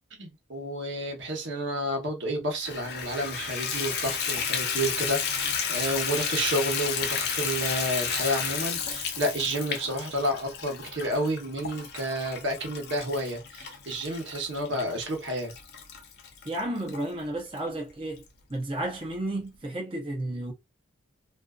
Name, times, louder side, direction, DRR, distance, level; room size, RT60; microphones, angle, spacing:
voice 1, 0.2-15.5, right 1 dB, 70° right, 1.0 m, -30 dB
Water tap faucet / Bathtub (filling or washing), 2.6-17.0 17.6-17.7 18.2-18.3 18.5-18.6, left 6 dB, 55° left, 0.5 m, -32 dB
voice 2, 16.4-18.2 18.5-20.5, right 1 dB, 30° right, 0.6 m, -32 dB
2.5 x 2.3 x 2.3 m
head